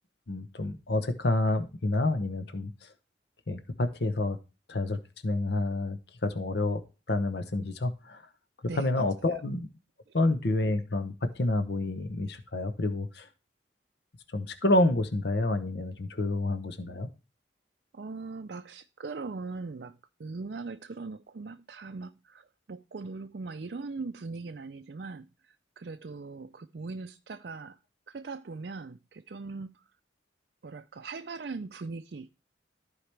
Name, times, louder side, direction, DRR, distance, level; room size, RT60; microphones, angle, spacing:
voice 1, 0.3-2.9 3.5-4.4 4.7-5.0 5.2-6.8 7.1-8.3 8.8-9.7 10.1-13.3 14.3-17.1, left 2 dB, 60° left, 0.9 m, -28 dB
voice 2, 17.9-27.8 28.1-29.8 30.6-32.3, right 4 dB, 55° right, 0.4 m, -40 dB
14.5 x 4.9 x 3.3 m
head